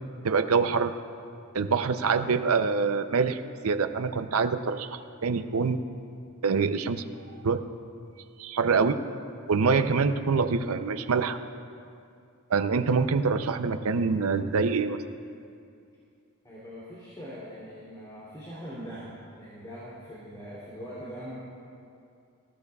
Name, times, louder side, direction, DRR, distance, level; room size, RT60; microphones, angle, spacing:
voice 1, 0.2-0.9 1.5-5.8 6.4-7.0 7.4-7.6 8.4-9.0 9.5-11.4 12.5-15.0, right 5 dB, 70° right, 9 dB, 0.6 m, -25 dB
voice 2, 16.4-21.4, equal, 20° left, -9 dB, 2.9 m, -42 dB
20.0 x 16.0 x 2.4 m, 2.5 s
head